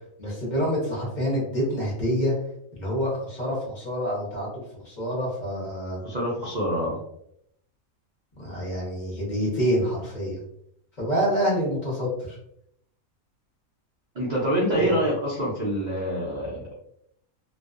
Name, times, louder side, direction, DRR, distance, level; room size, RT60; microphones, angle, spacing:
voice 1, 0.2-2.3 2.7-6.0 8.4-10.4 11.0-12.4 14.7-14.9, equal, 35° left, -6 dB, 0.9 m, -27 dB
voice 2, 6.0-7.0 14.2-16.7, equal, 65° right, -5 dB, 0.4 m, -26 dB
2.5 x 2.2 x 2.4 m, 0.73 s
omnidirectional pair, 1.5 m